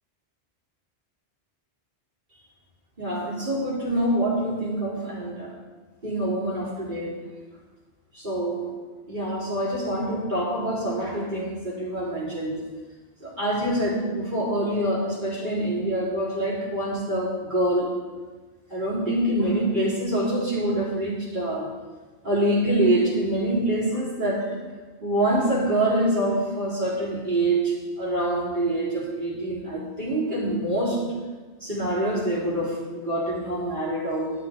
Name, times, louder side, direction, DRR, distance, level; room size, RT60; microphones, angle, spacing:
voice 1, 3.0-5.5 6.0-7.1 8.1-8.7 9.1-12.6 13.2-17.9 18.7-21.7 22.2-24.5 25.0-31.0 31.6-34.3, right 1 dB, 45° right, -6 dB, 3.5 m, -25 dB
12.5 x 10.5 x 3.5 m, 1.3 s
omnidirectional pair, 1.1 m